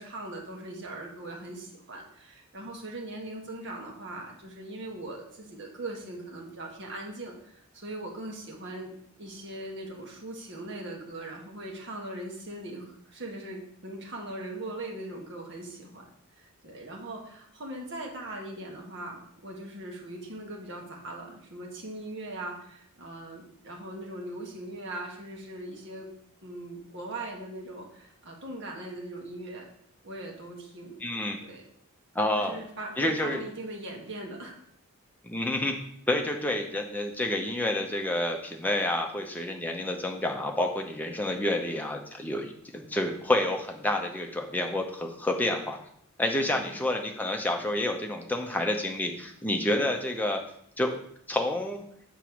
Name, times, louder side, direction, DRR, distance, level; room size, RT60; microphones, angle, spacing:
voice 1, 0.0-26.1 26.4-29.7 30.0-31.0 31.4-31.7 32.4-34.6 46.5-46.8, right 1 dB, 55° right, 0 dB, 1.3 m, -40 dB
voice 2, 31.0-31.4 32.1-32.6 33.0-33.4 35.2-35.8 36.1-45.8 46.2-50.4 50.8-50.9 51.3-51.8, left 1 dB, 10° left, 2 dB, 0.6 m, -29 dB
6.6 x 3.1 x 5.9 m, 0.68 s
head